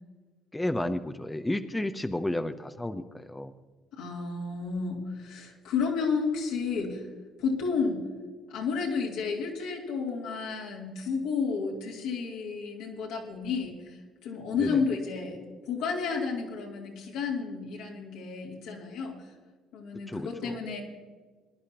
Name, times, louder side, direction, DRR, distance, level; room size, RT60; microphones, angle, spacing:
voice 1, 0.5-3.5 14.6-14.8 20.1-20.6, left 1 dB, 10° left, 8 dB, 0.8 m, -32 dB
voice 2, 4.0-7.0 7.4-8.0 8.5-13.8 14.2-19.2 19.7-20.8, left 5 dB, 75° left, -2 dB, 3.1 m, -31 dB
21.5 x 11.0 x 3.0 m, 1.4 s
hypercardioid pair, 65°, 0 cm